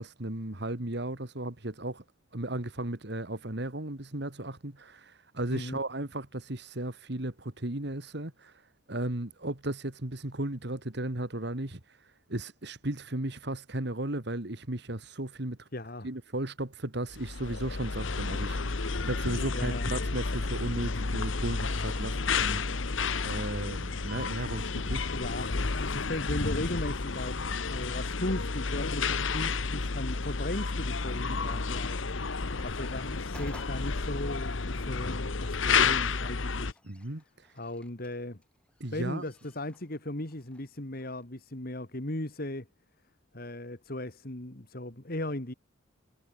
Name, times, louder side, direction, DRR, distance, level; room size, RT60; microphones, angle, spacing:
voice 1, 0.0-2.0 2.3-8.6 8.9-15.7 16.0-22.6 23.2-25.2 36.8-37.5 38.8-39.2, right 1 dB, 60° right, 2.2 m, -35 dB
voice 2, 15.7-16.1 19.5-19.9 25.1-32.1 32.4-36.8 37.5-38.4 38.9-42.7 43.3-45.5, left 1 dB, 50° left, 2.6 m, -37 dB
sound 1, 17.1-36.7, left 4 dB, 85° left, 1.2 m, -31 dB
sound 2, 29.2-41.3, left 1 dB, 5° left, 4.0 m, -59 dB
head